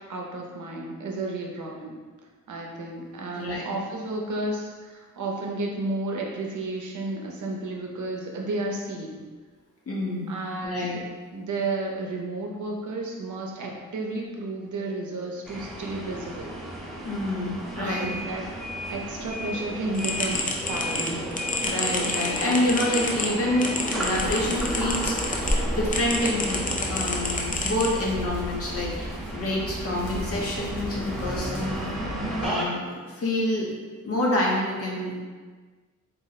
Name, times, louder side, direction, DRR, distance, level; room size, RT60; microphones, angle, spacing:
voice 1, 0.1-2.0 2.5-9.2 10.3-10.9 11.3-16.5 17.7-18.4 18.9-20.4 20.7-21.3, right 2 dB, 65° right, 0 dB, 0.7 m, -32 dB
voice 2, 9.9-10.3 10.6-11.0 17.0-18.1 21.6-31.8 32.4-33.7 34.0-35.2, left 1 dB, 45° left, -3 dB, 0.8 m, -27 dB
sound 1, 15.4-32.7, equal, ahead, 0.7 m, -34 dB
sound 2, 19.9-25.6 25.9-28.3, left 2 dB, 25° left, 0.4 m, -30 dB
Hands, 24.1-32.5, left 1 dB, 90° left, 1.1 m, -34 dB
4.0 x 2.1 x 3.9 m, 1.4 s
wide cardioid pair, 165°, 32 cm